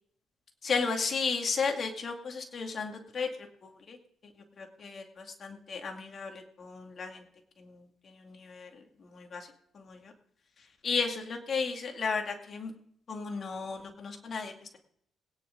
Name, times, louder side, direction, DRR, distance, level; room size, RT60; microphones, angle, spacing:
voice 1, 0.6-3.3 3.6-4.0 4.6-7.2 7.6-9.5 9.7-10.1 10.8-12.7 13.1-14.8, left 5 dB, 50° left, 4 dB, 2.3 m, -34 dB
21.5 x 9.9 x 3.8 m, 0.68 s
cardioid pair, 90°, 0 cm